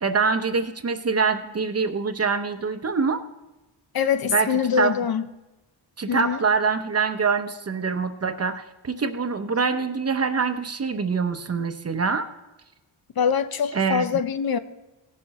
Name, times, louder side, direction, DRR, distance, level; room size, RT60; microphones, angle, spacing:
voice 1, 0.0-3.2 4.3-4.5 4.8-5.0 6.0-12.3 13.7-14.0, right 5 dB, 35° right, 0.8 m, -24 dB
voice 2, 3.9-5.3 6.1-6.4 13.2-14.6, left 7 dB, 50° left, 0.7 m, -24 dB
18.0 x 7.1 x 4.2 m
wide cardioid pair, 125°, 46 cm